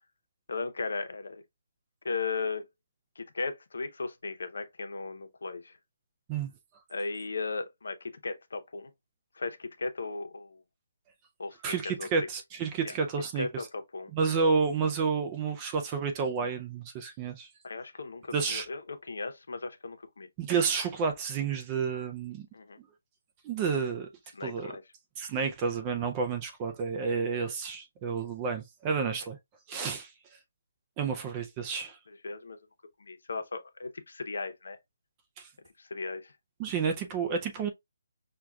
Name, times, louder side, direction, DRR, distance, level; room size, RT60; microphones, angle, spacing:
voice 1, 0.5-1.4 2.0-2.7 3.2-5.8 6.9-8.9 9.3-10.6 11.4-12.1 12.8-12.9 13.4-14.1 17.6-20.3 22.5-22.8 24.3-24.8 32.1-32.6 33.0-34.8 35.8-36.3, left 4 dB, 75° left, 0.8 m, -36 dB
voice 2, 11.6-13.7 14.1-17.5 18.3-18.7 20.4-22.5 22.8-22.9 23.4-24.1 24.4-24.7 25.2-29.4 29.7-30.1 31.0-32.0 35.4-35.5 36.6-37.7, right 5 dB, 15° right, 0.4 m, -30 dB
6.0 x 2.3 x 2.3 m
hypercardioid pair, 175°, 0 cm